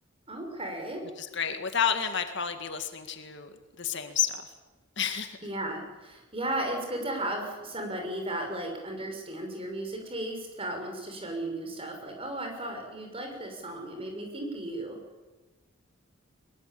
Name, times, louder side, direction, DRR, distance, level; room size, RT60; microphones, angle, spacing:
voice 1, 0.3-1.0 5.4-15.0, right 1 dB, 25° right, 3 dB, 6.3 m, -35 dB
voice 2, 1.2-4.5 5.0-5.4, left 7 dB, 55° left, 7 dB, 2.1 m, -30 dB
23.0 x 22.5 x 8.7 m, 1.2 s
head